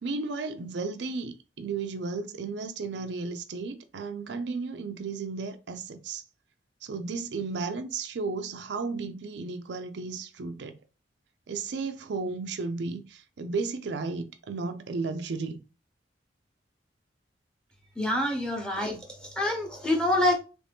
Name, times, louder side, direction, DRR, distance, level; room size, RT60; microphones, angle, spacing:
voice 1, 0.0-6.2 6.8-10.8 11.5-15.6, right 4 dB, 70° right, 0.4 m, -34 dB
voice 2, 18.0-20.3, left 1 dB, 5° left, 0.8 m, -26 dB
3.1 x 2.6 x 3.4 m
head